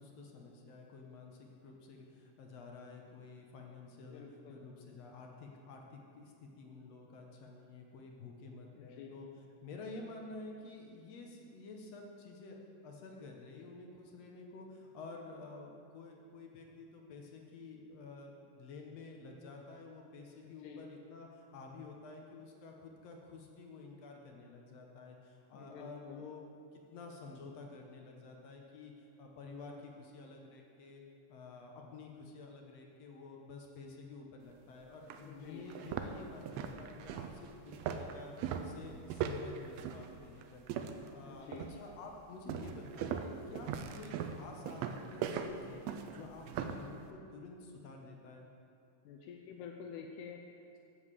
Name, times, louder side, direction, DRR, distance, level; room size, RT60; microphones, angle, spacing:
voice 1, 0.0-9.3 9.6-31.0 31.3-38.3 38.6-40.7 40.9-45.8 46.1-48.5, left 3 dB, 65° left, 1 dB, 1.9 m, -50 dB
voice 2, 4.1-4.7 8.8-9.2 20.4-20.9 25.5-26.3 35.2-35.7 41.3-41.7 49.0-50.8, left 6 dB, 80° left, 2 dB, 2.1 m, -49 dB
sound 1, 34.5-34.6 35.1-35.2 35.7-41.1 41.5-41.9 42.5-46.9, right 7 dB, 85° right, 1.6 m, -39 dB
8.3 x 7.1 x 7.3 m, 2.5 s
omnidirectional pair, 3.6 m